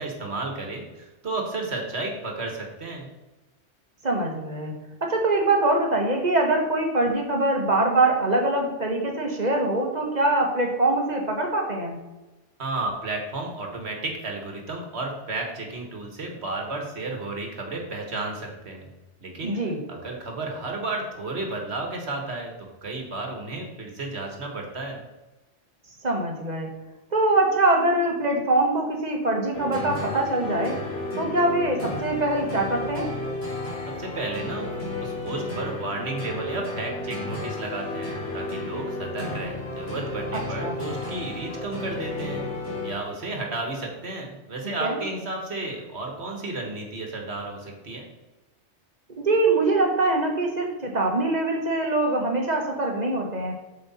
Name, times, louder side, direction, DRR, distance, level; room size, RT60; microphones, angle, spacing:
voice 1, 0.0-3.1 12.6-18.9 19.2-19.6 19.9-22.5 22.8-25.0 34.0-34.7 35.0-42.5 42.8-48.1, right 2 dB, 70° right, 1 dB, 1.8 m, -32 dB
voice 2, 4.0-4.7 5.0-12.0 19.4-19.8 26.0-26.7 27.1-30.8 31.1-33.1 40.6-40.8 44.6-45.0 49.2-53.6, right 2 dB, 40° right, 1 dB, 1.5 m, -23 dB
sound 1, 29.5-43.3, left 2 dB, 60° left, 3.2 m, -33 dB
7.7 x 6.6 x 4.2 m, 1.1 s
omnidirectional pair, 1.2 m